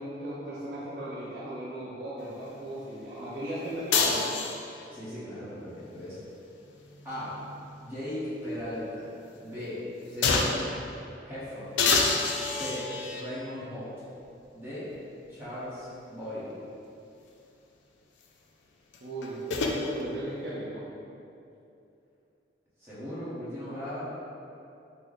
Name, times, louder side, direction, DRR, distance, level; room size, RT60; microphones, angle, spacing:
voice 1, 0.0-4.4 19.0-20.9, right 1 dB, 60° right, -10 dB, 0.5 m, -36 dB
sound 1, 3.9-4.9 6.6-8.2 8.6-8.7 10.2-10.7 11.8-13.3 14.2-14.3 18.9-19.8, left 4 dB, 80° left, 0.3 m, -28 dB
voice 2, 4.9-6.2 7.0-7.4 7.8-9.1 9.4-9.8 10.1-10.6 11.2-12.0 12.4-13.9 14.5-14.9 15.3-16.6 22.8-24.2, equal, 15° right, -11 dB, 0.9 m, -38 dB
3.2 x 2.0 x 3.8 m, 2.7 s
head